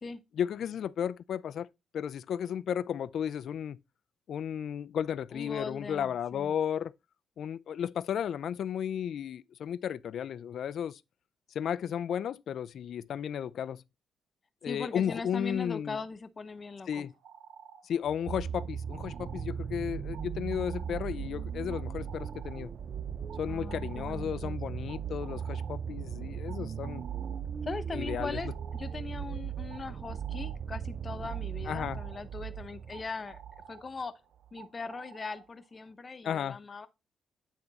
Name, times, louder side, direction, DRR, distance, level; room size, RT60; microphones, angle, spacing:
voice 1, 0.4-1.7 1.9-3.8 4.3-6.9 7.4-11.0 11.5-13.8 14.6-16.0 16.9-17.1 17.8-22.7 23.4-27.0 27.9-28.4 31.7-32.0 36.2-36.6, left 9 dB, 65° left, 0.3 m, -34 dB
voice 2, 5.3-6.5 14.7-17.1 23.5-24.6 27.6-33.4 33.7-34.1 34.5-36.9, left 4 dB, 35° left, 0.8 m, -40 dB
sound 1, 16.5-35.9, right 7 dB, 80° right, 0.8 m, -54 dB
sound 2, 18.1-33.6 34.5-34.6, right 8 dB, 50° right, 0.4 m, -38 dB
8.9 x 3.6 x 4.0 m
cardioid pair, 90°, 0 cm